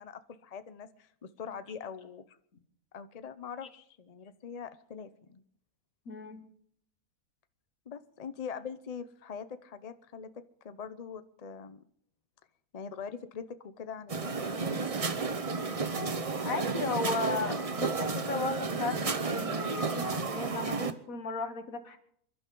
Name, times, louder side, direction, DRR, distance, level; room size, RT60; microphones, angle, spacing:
voice 1, 0.0-2.4 2.9-5.4 7.9-11.8 12.7-14.9, left 6 dB, 40° left, 12 dB, 0.5 m, -43 dB
voice 2, 6.1-6.4 16.5-22.0, left 3 dB, 65° left, 8 dB, 1.9 m, -35 dB
sound 1, 14.1-20.9, right 4 dB, 30° right, 0.7 m, -32 dB
27.5 x 12.0 x 3.8 m, 0.66 s
omnidirectional pair, 1.6 m